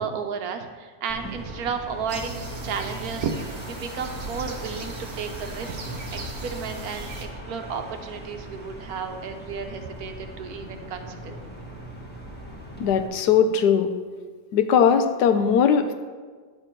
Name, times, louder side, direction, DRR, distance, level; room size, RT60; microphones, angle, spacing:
voice 1, 0.0-5.8 6.1-11.4, right 6 dB, 70° right, 6 dB, 1.2 m, -33 dB
sound 1, 1.1-13.1, equal, 5° left, 1.1 m, -40 dB
sound 2, 2.1-7.3, right 2 dB, 40° right, 1.0 m, -37 dB
voice 2, 12.8-13.9 14.5-15.9, left 7 dB, 80° left, 9 dB, 1.2 m, -19 dB
9.7 x 6.9 x 4.5 m, 1.5 s
omnidirectional pair, 1.8 m